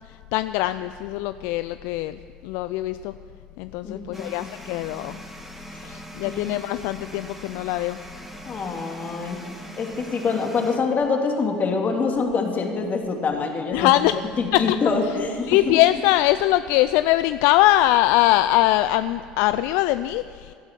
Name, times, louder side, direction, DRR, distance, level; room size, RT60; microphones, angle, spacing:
voice 1, 0.3-3.1 3.6-5.2 5.8-8.0 13.7-14.3 14.5-14.8 15.5-20.5, left 15 dB, 70° left, 13 dB, 0.4 m, -22 dB
voice 2, 3.8-4.4 6.2-6.6 8.4-9.5 9.8-13.9 14.4-15.8, left 4 dB, 40° left, 3 dB, 2.5 m, -25 dB
sound 1, 4.1-10.8, right 1 dB, 5° right, 2.4 m, -41 dB
16.0 x 12.0 x 5.2 m, 2.1 s
hypercardioid pair, 75°, 4 cm